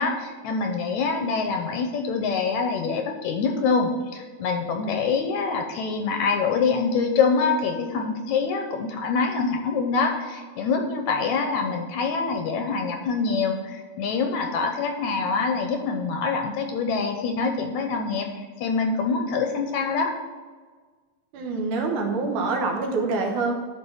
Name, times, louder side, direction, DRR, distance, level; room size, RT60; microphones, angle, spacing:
voice 1, 0.0-20.2, left 4 dB, 75° left, 5 dB, 1.9 m, -25 dB
voice 2, 21.3-23.5, right 3 dB, 75° right, 2 dB, 2.6 m, -25 dB
12.0 x 4.7 x 5.5 m, 1.4 s
omnidirectional pair, 3.8 m